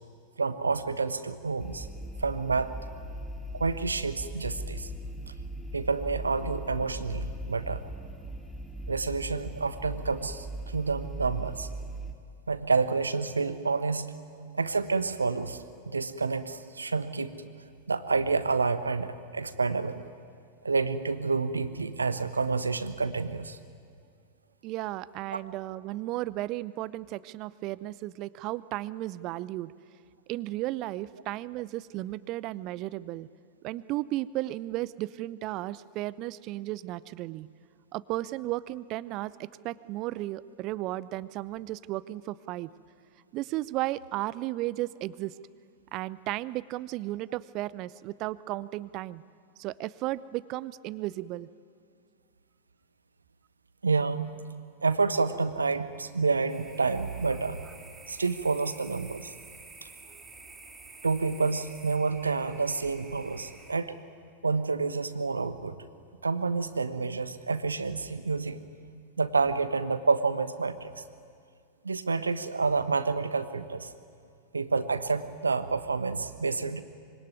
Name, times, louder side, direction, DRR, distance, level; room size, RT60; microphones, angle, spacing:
voice 1, 0.4-1.9 2.2-2.8 3.5-4.9 5.7-7.8 8.9-11.7 12.5-14.1 14.5-15.6 15.8-17.3 17.9-20.0 20.6-23.6 53.8-54.3 54.8-57.6 58.1-59.3 61.0-64.0 64.4-65.7 66.2-68.6 69.2-71.0 71.8-73.9 74.5-76.8, right 4 dB, 75° right, 12 dB, 1.3 m, -29 dB
sound 1, 1.6-12.1, right 1 dB, ahead, 2.2 m, -39 dB
voice 2, 24.6-29.7 30.3-33.3 33.6-37.5 37.9-42.7 43.3-45.3 45.9-49.2 49.6-51.5, right 16 dB, 40° right, 19 dB, 0.7 m, -34 dB
sound 2, 56.5-63.7, right 3 dB, 15° right, 4.7 m, -50 dB
25.5 x 24.5 x 9.5 m, 2.3 s
figure-of-eight pair, 90°, 0 cm